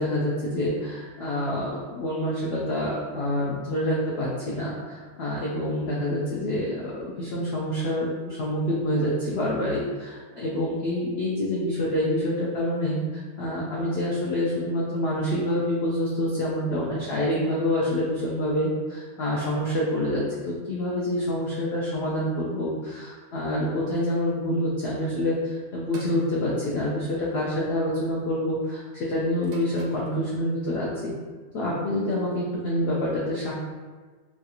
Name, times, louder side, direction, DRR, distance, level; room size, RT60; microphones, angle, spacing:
voice 1, 0.0-31.1 31.5-33.5, left 1 dB, 75° left, -5 dB, 0.5 m, -27 dB
sound 1, 25.9-26.3 27.5-27.8 29.4-30.1, right 2 dB, 70° right, 0.9 m, -43 dB
3.1 x 2.4 x 2.8 m, 1.4 s
omnidirectional pair, 1.6 m